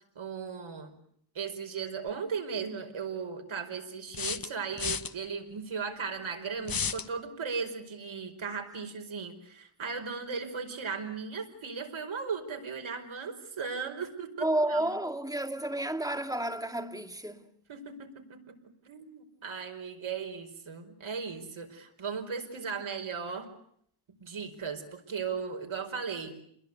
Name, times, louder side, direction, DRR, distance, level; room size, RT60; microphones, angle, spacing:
voice 1, 0.2-1.0 1.4-15.0 17.7-18.5 18.9-23.5 24.2-26.4, right 5 dB, 75° right, 5.1 m, -37 dB
sound 1, 2.1-2.2 4.1-5.1 6.6-7.1, left 6 dB, 45° left, 1.2 m, -32 dB
voice 2, 14.4-17.4, right 1 dB, 5° right, 2.2 m, -31 dB
30.0 x 22.0 x 8.2 m
wide cardioid pair, 110°, 48 cm